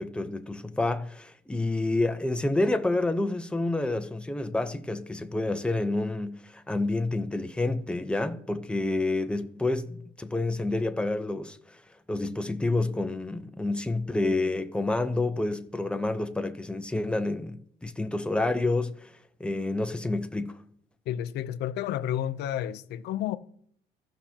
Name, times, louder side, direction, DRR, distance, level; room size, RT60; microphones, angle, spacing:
voice 1, 0.0-11.8 12.1-19.1 19.4-20.6, left 2 dB, 5° left, 0.8 m, -29 dB
voice 2, 21.1-23.4, left 11 dB, 80° left, 0.6 m, -31 dB
15.5 x 5.9 x 2.9 m
cardioid pair, 110°, 17 cm